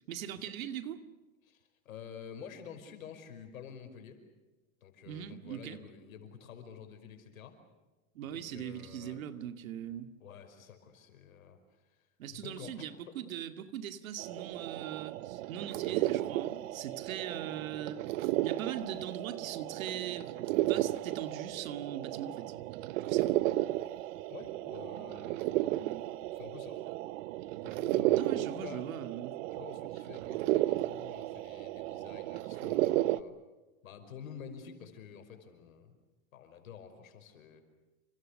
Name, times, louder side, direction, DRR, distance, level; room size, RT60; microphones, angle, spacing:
voice 1, 0.1-1.0 5.1-5.8 8.1-10.1 12.2-18.0 18.4-22.5 23.1-23.4 25.8-26.1 28.1-29.4, right 10 dB, 80° right, 9 dB, 2.3 m, -40 dB
voice 2, 1.4-4.2 4.8-7.6 8.2-9.2 10.2-11.6 11.9-13.2 24.3-25.5 26.3-26.8 27.6-28.8 29.5-33.4 33.8-35.9 36.3-37.6, left 7 dB, 85° left, 6 dB, 5.6 m, -49 dB
sound 1, 14.2-33.2, right 16 dB, 65° right, 1.0 m, -33 dB
29.0 x 26.0 x 6.6 m, 1.2 s
hypercardioid pair, 110°, 40 cm